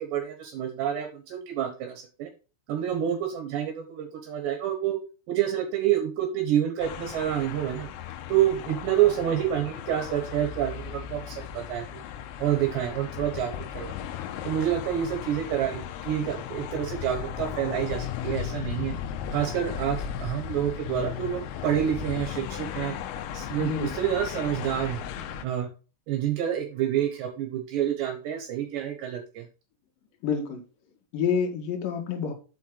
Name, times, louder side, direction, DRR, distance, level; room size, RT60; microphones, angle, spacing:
voice 1, 0.0-2.3 2.7-5.0 5.3-7.9 8.3-12.0 12.4-14.0 14.4-18.9 19.3-22.9 23.3-25.0 25.4-25.7 26.1-29.5, right 10 dB, 70° right, 4 dB, 2.9 m, -28 dB
sound 1, 6.8-25.5, left 9 dB, 85° left, 3.5 m, -36 dB
voice 2, 23.6-23.9 30.2-30.6 31.1-32.3, left 6 dB, 55° left, 2 dB, 2.8 m, -28 dB
7.4 x 5.9 x 3.8 m, 0.34 s
omnidirectional pair, 6.0 m